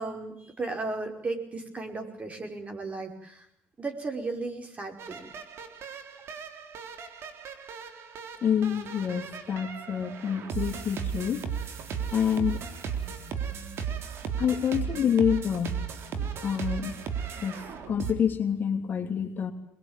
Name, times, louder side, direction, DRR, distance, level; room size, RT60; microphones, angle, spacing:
voice 1, 0.0-3.5 3.8-5.3, right 3 dB, 30° right, 4 dB, 5.4 m, -35 dB
sound 1, 5.0-18.1, right 7 dB, 60° right, 3.7 m, -36 dB
voice 2, 8.4-11.4 12.1-12.6 14.4-15.8 16.2-17.0 17.4-19.5, left 8 dB, 45° left, 4 dB, 3.0 m, -27 dB
23.0 x 21.5 x 9.1 m, 0.76 s
supercardioid pair, 80°, 5 cm